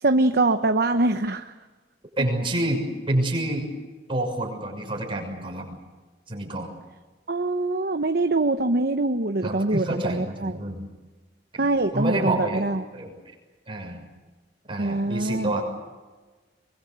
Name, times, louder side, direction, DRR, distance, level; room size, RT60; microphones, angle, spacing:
voice 1, 0.0-1.5 7.3-10.5 11.6-12.8 14.8-15.6, right 2 dB, 60° right, 7 dB, 0.9 m, -24 dB
voice 2, 2.2-3.7 4.1-5.8 6.3-6.7 9.4-10.8 11.5-12.6 12.9-13.1 13.7-14.0 14.7-15.6, right 1 dB, 30° right, 0 dB, 6.5 m, -28 dB
23.5 x 23.5 x 8.1 m, 1.3 s
head